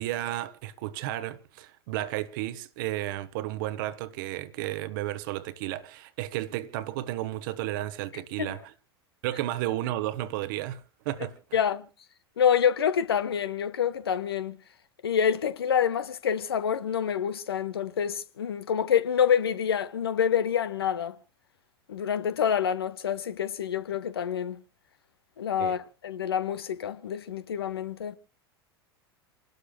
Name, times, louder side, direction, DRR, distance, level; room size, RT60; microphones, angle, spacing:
voice 1, 0.0-8.7 9.2-11.6 25.6-25.8, right 15 dB, 50° right, 1.3 m, -33 dB
voice 2, 11.5-11.9 12.4-14.6 15.0-21.2 21.9-24.6 25.4-25.8 26.0-28.2, left 8 dB, 65° left, 1.2 m, -27 dB
28.5 x 12.0 x 2.3 m
figure-of-eight pair, 85°, 14 cm